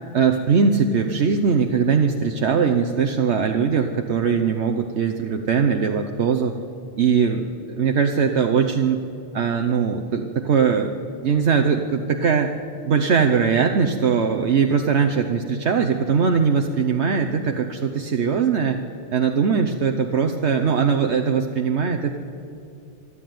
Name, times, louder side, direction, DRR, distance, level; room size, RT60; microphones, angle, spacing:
voice 1, 0.1-6.5 7.0-9.0 9.3-10.9 11.2-12.5 12.8-18.8 19.1-22.2, right 6 dB, 70° right, 4 dB, 1.2 m, -20 dB
26.5 x 11.0 x 9.3 m, 2.6 s
omnidirectional pair, 1.2 m